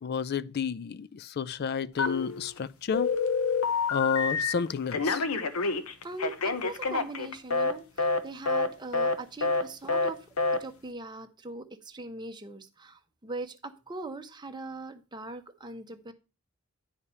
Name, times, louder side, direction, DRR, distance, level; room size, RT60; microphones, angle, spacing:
voice 1, 0.0-3.1 3.9-5.2, left 6 dB, 45° left, 0.4 m, -31 dB
Telephone, 2.0-2.6 2.9-4.5 4.9-7.7 8.0-8.2 8.5-8.7 8.9-9.2 9.4-9.6 9.9-10.1 10.4-10.6, left 4 dB, 80° left, 1.0 m, -27 dB
voice 2, 6.0-10.3 10.6-16.1, right 2 dB, 20° right, 0.8 m, -41 dB
9.7 x 4.9 x 5.5 m
head